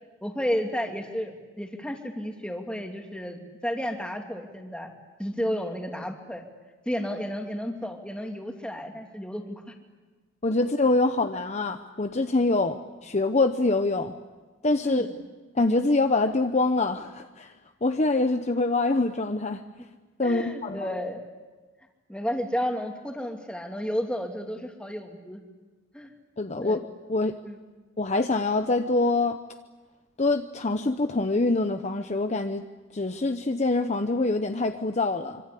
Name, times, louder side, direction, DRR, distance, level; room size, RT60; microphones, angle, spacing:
voice 1, 0.2-4.9 5.2-6.4 6.9-9.7 14.8-15.1 20.2-21.2 22.1-25.4 25.9-26.1 26.6-26.8 27.4-27.6, equal, 5° left, 3 dB, 2.6 m, -32 dB
voice 2, 10.4-14.1 14.6-15.1 15.5-17.5 17.8-19.6 20.2-20.8 26.4-26.8 27.1-27.3 28.0-29.4 30.2-32.6 32.9-35.4, left 2 dB, 35° left, 7 dB, 0.9 m, -25 dB
25.5 x 25.5 x 8.5 m, 1.3 s
head